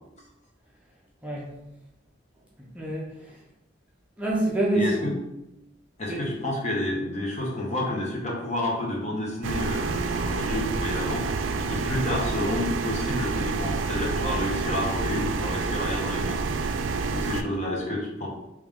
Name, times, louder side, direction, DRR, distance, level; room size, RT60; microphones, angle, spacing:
voice 1, 2.7-3.4 4.2-5.1 6.1-6.3, right 1 dB, 5° right, -5 dB, 0.6 m, -26 dB
voice 2, 4.7-5.2 6.0-16.4 17.1-18.3, left 1 dB, 40° left, -2 dB, 0.9 m, -30 dB
sound 1, 9.4-17.4, right 4 dB, 85° right, 0.3 m, -28 dB
3.2 x 3.1 x 3.6 m, 0.91 s
head